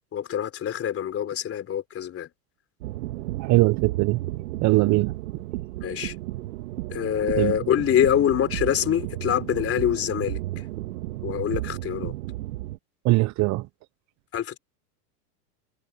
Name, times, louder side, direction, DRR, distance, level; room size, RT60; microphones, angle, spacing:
voice 1, 0.1-2.3 5.8-6.2 6.9-10.7 11.2-12.1 14.3-14.6, left 10 dB, 25° left, 3.8 m, -25 dB
sound 1, 2.8-12.8, right 17 dB, 65° right, 2.6 m, -33 dB
voice 2, 3.4-4.2 4.6-5.4 7.4-7.6 13.0-13.7, right 21 dB, 35° right, 0.9 m, -21 dB
hypercardioid pair, 115°, 49 cm